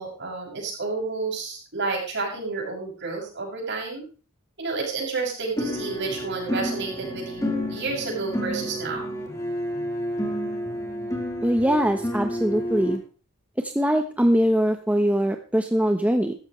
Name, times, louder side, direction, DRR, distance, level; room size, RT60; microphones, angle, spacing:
voice 1, 0.0-4.1 4.6-9.1, right 3 dB, 55° right, 0 dB, 7.0 m, -30 dB
sound 1, 5.6-13.0, equal, 15° left, 3.9 m, -30 dB
voice 2, 11.4-13.0 13.6-16.3, equal, 5° right, 5 dB, 1.0 m, -22 dB
15.5 x 14.5 x 3.2 m, 0.36 s
head